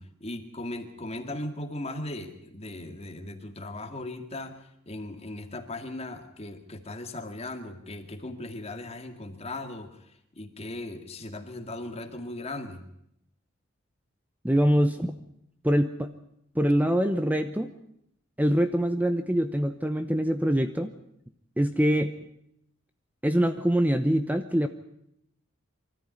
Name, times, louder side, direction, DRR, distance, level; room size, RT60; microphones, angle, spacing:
voice 1, 0.0-4.6 4.9-10.0 10.3-12.8, left 2 dB, 30° left, 6 dB, 2.1 m, -38 dB
voice 2, 14.4-15.2 15.6-16.1 16.5-17.7 18.4-20.9 21.6-22.2 23.2-24.7, equal, 10° right, 9 dB, 0.8 m, -24 dB
24.0 x 14.0 x 9.6 m, 0.76 s
head